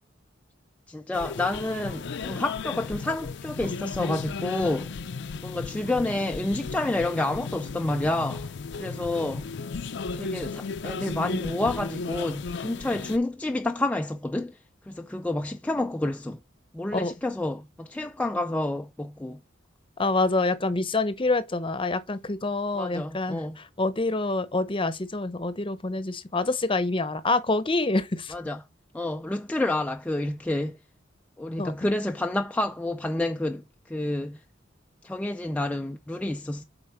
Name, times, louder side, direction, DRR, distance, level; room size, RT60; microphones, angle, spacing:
voice 1, 0.9-4.9 5.4-9.5 10.1-14.6 14.9-16.4 16.7-19.4 22.8-23.6 28.3-28.6 28.9-30.8 31.4-34.4 35.0-36.6, left 2 dB, 5° left, 0.3 m, -29 dB
sound 1, 1.1-13.2, left 4 dB, 65° left, 0.5 m, -35 dB
voice 2, 20.0-28.3 31.6-31.7, left 2 dB, 25° left, 0.8 m, -26 dB
7.8 x 4.4 x 4.4 m
head